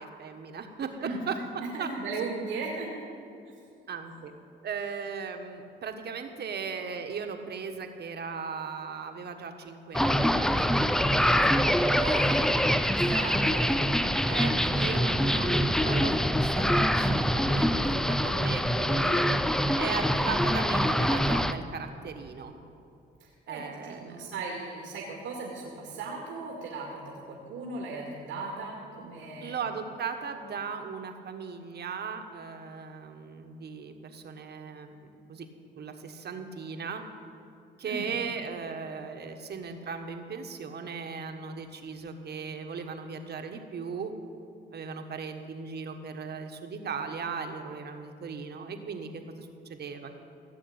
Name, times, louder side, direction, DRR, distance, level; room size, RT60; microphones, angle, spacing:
voice 1, 0.0-1.4 1.8-1.9 3.9-4.3 4.6-11.6 12.4-13.0 14.3-19.4 19.8-22.5 23.5-24.3 29.4-35.5 35.8-37.0 37.8-44.1 44.7-50.2, right 5 dB, 55° right, 5 dB, 1.5 m, -37 dB
voice 2, 1.6-2.9 3.2-3.3 12.0-13.8 23.2-29.6 37.8-38.1, right 3 dB, 85° right, -1 dB, 2.1 m, -37 dB
sound 1, 9.9-21.5, equal, ahead, 0.5 m, -25 dB
16.5 x 7.3 x 8.8 m, 2.7 s
cardioid pair, 90°, 20 cm